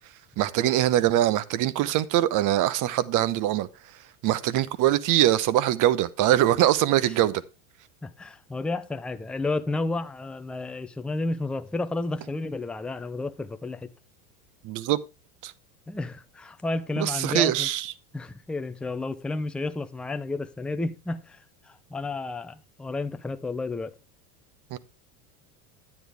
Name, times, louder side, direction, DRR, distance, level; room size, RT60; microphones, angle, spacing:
voice 1, 0.4-3.7 4.2-7.4 14.6-15.0 15.4-15.5 17.0-17.9 24.7-24.8, right 13 dB, 45° right, 0.9 m, -23 dB
voice 2, 8.0-13.9 15.9-17.7 18.1-23.9, left 2 dB, ahead, 0.4 m, -31 dB
10.0 x 9.6 x 3.4 m
supercardioid pair, 115°, 43 cm